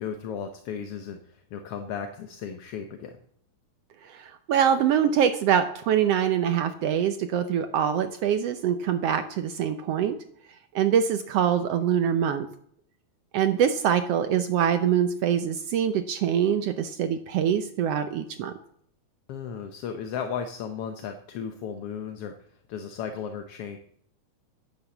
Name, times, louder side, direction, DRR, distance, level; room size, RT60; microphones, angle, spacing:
voice 1, 0.0-3.1 19.3-23.8, left 7 dB, 65° left, 7 dB, 1.6 m, -35 dB
voice 2, 4.0-10.2 10.7-12.5 13.3-18.5, right 8 dB, 70° right, 9 dB, 1.6 m, -24 dB
10.5 x 9.2 x 7.1 m, 0.64 s
omnidirectional pair, 3.3 m